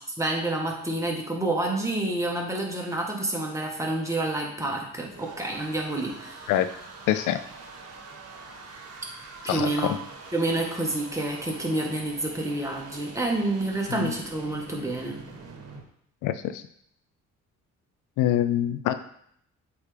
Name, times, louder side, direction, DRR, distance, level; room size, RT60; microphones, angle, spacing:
voice 1, 0.2-6.5 9.4-10.0 10.3-15.2, right 2 dB, 10° right, -1 dB, 1.4 m, -28 dB
sound 1, 4.6-15.8, right 4 dB, 55° right, 1.2 m, -45 dB
voice 2, 7.1-7.4 9.5-10.0 13.9-14.1 16.2-16.6 18.2-18.9, left 12 dB, 85° left, 12 dB, 0.5 m, -25 dB
8.0 x 3.5 x 3.4 m, 0.68 s
cardioid pair, 90°, 30 cm